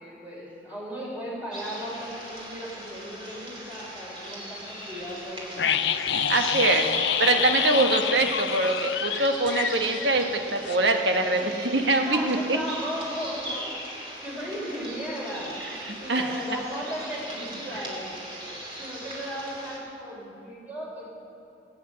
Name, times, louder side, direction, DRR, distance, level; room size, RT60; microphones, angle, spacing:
voice 1, 0.0-5.8 11.4-11.7 12.1-15.5 16.0-18.4 18.8-21.0, equal, 10° right, -5 dB, 4.2 m, -36 dB
sound 1, 1.5-19.8, right 1 dB, 30° right, 2.8 m, -39 dB
sound 2, 5.6-10.4 10.7-10.8, left 9 dB, 85° left, 0.5 m, -27 dB
voice 2, 6.3-12.6 15.9-16.3, right 2 dB, 85° right, 4 dB, 1.3 m, -24 dB
20.5 x 8.6 x 7.8 m, 2.7 s
head